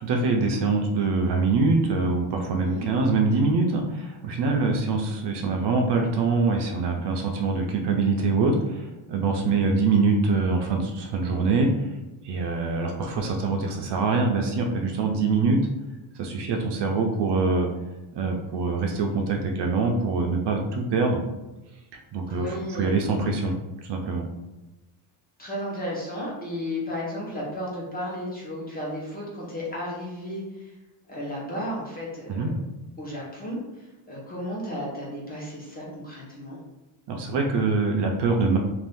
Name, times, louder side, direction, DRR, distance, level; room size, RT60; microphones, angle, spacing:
voice 1, 0.0-11.9 12.2-15.6 16.2-17.7 18.1-21.2 21.9-23.6 23.8-24.3 32.3-32.5 37.1-38.6, right 3 dB, 60° right, 2 dB, 0.5 m, -24 dB
voice 2, 22.3-23.0 25.4-30.7 31.1-32.5 33.0-36.6, left 1 dB, 20° left, -5 dB, 0.8 m, -34 dB
2.6 x 2.5 x 3.5 m, 1.0 s
cardioid pair, 155°, 48 cm